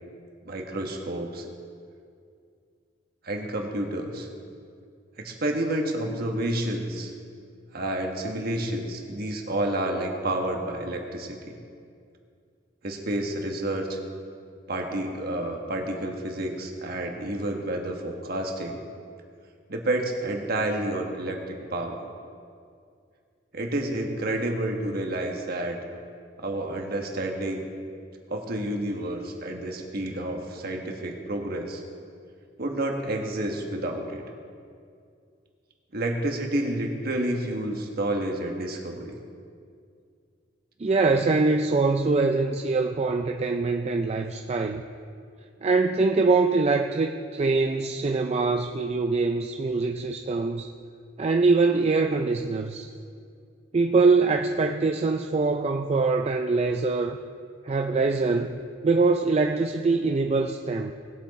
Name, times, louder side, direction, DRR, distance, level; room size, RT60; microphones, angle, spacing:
voice 1, 0.4-1.4 3.2-4.3 5.2-7.1 7.7-11.6 12.8-14.0 14.7-18.8 19.7-22.1 23.5-25.8 26.4-27.6 28.3-31.8 32.6-34.2 35.9-39.2, right 1 dB, 55° right, 2 dB, 1.4 m, -29 dB
voice 2, 40.8-44.8 45.6-50.7 51.2-52.9 53.7-57.2 57.6-60.9, right 3 dB, 35° right, 4 dB, 0.4 m, -23 dB
19.5 x 7.3 x 4.2 m, 2.3 s
head